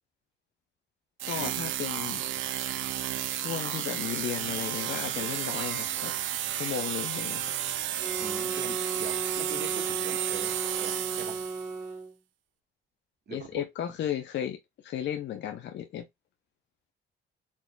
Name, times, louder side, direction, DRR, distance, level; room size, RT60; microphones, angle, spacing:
voice 1, 1.2-2.2 3.4-6.1 6.5-7.5 13.3-14.6 14.8-16.1, left 10 dB, 65° left, 0.6 m, -34 dB
sound 1, 1.2-11.7, right 11 dB, 75° right, 0.5 m, -32 dB
sound 2, 8.0-12.2, right 3 dB, 15° right, 2.0 m, -35 dB
voice 2, 8.2-10.5 10.8-11.5 13.3-13.6, right 5 dB, 55° right, 1.5 m, -42 dB
4.3 x 2.8 x 2.2 m
cardioid pair, 90°, 20 cm